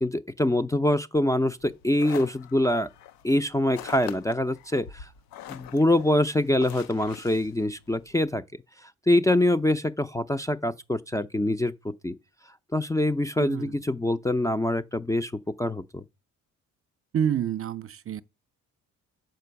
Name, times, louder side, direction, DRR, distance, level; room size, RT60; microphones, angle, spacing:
voice 1, 0.0-2.9 3.2-5.1 5.5-8.4 8.8-12.2 12.7-15.3 15.6-16.0, left 1 dB, 10° left, 0.5 m, -25 dB
sound 1, 1.6-8.3, left 10 dB, 85° left, 0.7 m, -45 dB
voice 2, 13.4-13.8 17.1-18.2, right 9 dB, 40° right, 0.6 m, -28 dB
7.7 x 4.4 x 6.8 m
supercardioid pair, 75°, 35 cm